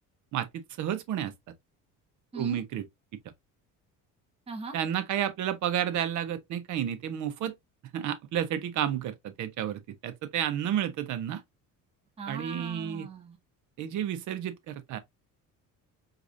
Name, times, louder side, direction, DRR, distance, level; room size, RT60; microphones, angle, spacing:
voice 1, 0.3-1.3 2.3-2.8 4.7-7.5 7.9-11.4 12.3-13.1 13.8-15.0, right 10 dB, 60° right, 0.8 m, -31 dB
voice 2, 12.2-13.4, right 3 dB, 15° right, 0.8 m, -39 dB
4.7 x 2.5 x 2.5 m
cardioid pair, 135°, 34 cm